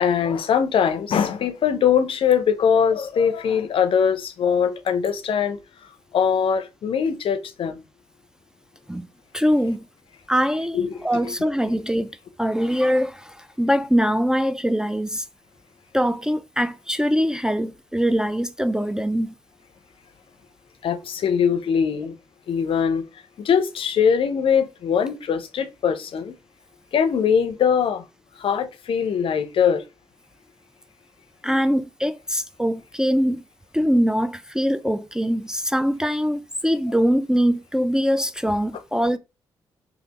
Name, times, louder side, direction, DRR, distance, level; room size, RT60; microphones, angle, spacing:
voice 1, 0.0-5.6 6.1-7.8 10.7-11.0 11.2-11.3 20.8-22.1 22.5-23.0 23.4-26.3 26.9-28.0 28.4-29.8, left 7 dB, 65° left, 0.5 m, -21 dB
voice 2, 9.3-9.9 10.3-15.2 15.9-19.3 31.4-33.4 33.7-39.2, equal, 5° right, 0.3 m, -22 dB
3.2 x 2.3 x 2.9 m
supercardioid pair, 50°, 10 cm